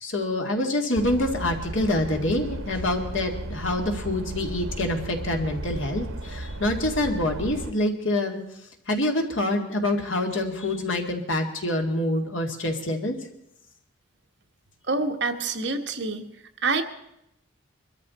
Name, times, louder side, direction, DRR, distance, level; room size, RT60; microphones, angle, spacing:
voice 1, 0.0-8.4 8.9-13.2, left 1 dB, 75° left, 3 dB, 2.2 m, -26 dB
sound 1, 0.9-7.7, right 1 dB, 85° right, 1.0 m, -35 dB
voice 2, 14.9-16.3 16.6-16.8, right 3 dB, 60° right, 5 dB, 1.4 m, -26 dB
23.0 x 13.5 x 4.2 m, 0.80 s
head